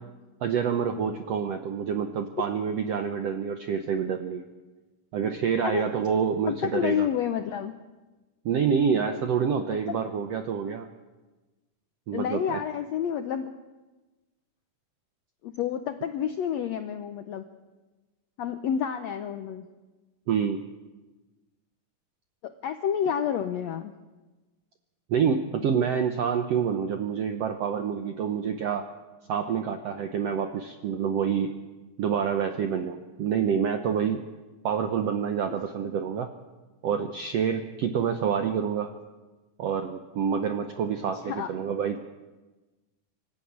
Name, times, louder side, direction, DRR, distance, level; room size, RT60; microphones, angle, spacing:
voice 1, 0.4-4.4 5.1-7.1 8.4-10.9 12.1-12.6 20.3-20.6 25.1-28.9 29.3-31.5 32.0-34.2 34.6-36.3 36.8-38.9 39.6-42.0, right 7 dB, 75° right, 7 dB, 1.4 m, -27 dB
voice 2, 6.4-7.7 9.9-10.0 12.1-13.5 15.4-17.4 18.4-19.7 22.4-23.9 41.3-41.5, left 8 dB, 80° left, 8 dB, 1.5 m, -29 dB
25.0 x 13.0 x 8.7 m, 1.2 s
omnidirectional pair, 4.1 m